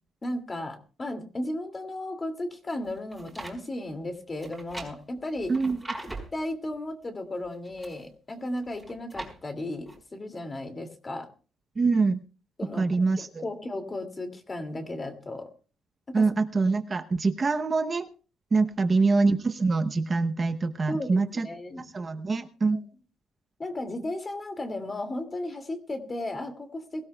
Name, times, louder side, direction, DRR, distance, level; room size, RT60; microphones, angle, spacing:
voice 1, 0.2-5.5 6.3-11.3 12.6-15.5 16.1-16.3 20.9-21.8 22.7-22.8 23.6-27.1, left 1 dB, 20° left, 6 dB, 2.4 m, -35 dB
sound 1, 2.9-3.6 4.4-6.4 7.4-8.0 8.6-9.4 9.9-10.0, right 2 dB, 5° right, 4.6 m, -40 dB
voice 2, 11.8-12.2 12.8-13.4 16.1-18.1 18.5-21.5 21.9-22.8, right 3 dB, 25° right, 7 dB, 0.8 m, -24 dB
23.0 x 17.0 x 2.3 m, 0.37 s
cardioid pair, 165°, 0 cm